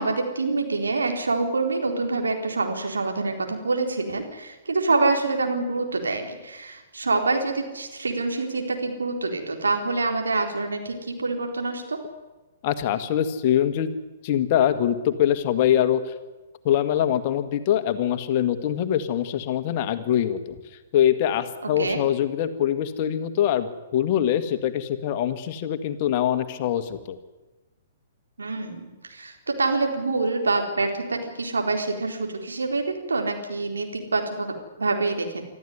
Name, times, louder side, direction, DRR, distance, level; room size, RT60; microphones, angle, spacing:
voice 1, 0.0-12.0 21.8-22.0 28.4-35.4, right 3 dB, 75° right, 3 dB, 4.1 m, -26 dB
voice 2, 12.6-13.9 14.2-16.0 16.6-20.6 20.9-27.2, left 10 dB, 40° left, 9 dB, 1.9 m, -23 dB
25.0 x 14.0 x 9.8 m, 1.2 s
figure-of-eight pair, 115°, 0 cm